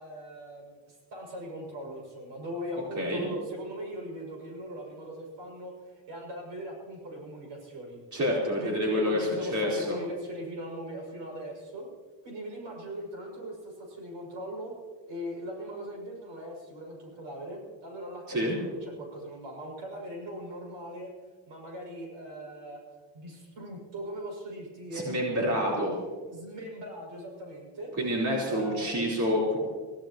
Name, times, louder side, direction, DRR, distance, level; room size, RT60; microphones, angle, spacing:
voice 1, 0.0-8.0 8.6-11.9 12.2-14.7 15.1-21.1 21.5-22.8 23.1-25.7 26.3-27.9 28.5-28.9, equal, 75° right, 0 dB, 6.5 m, -40 dB
voice 2, 3.0-3.3 8.1-10.0 18.3-18.6 24.9-26.0 28.0-29.6, equal, 40° right, -4 dB, 4.2 m, -28 dB
25.0 x 16.5 x 3.0 m, 1.5 s
cardioid pair, 160°, 45 cm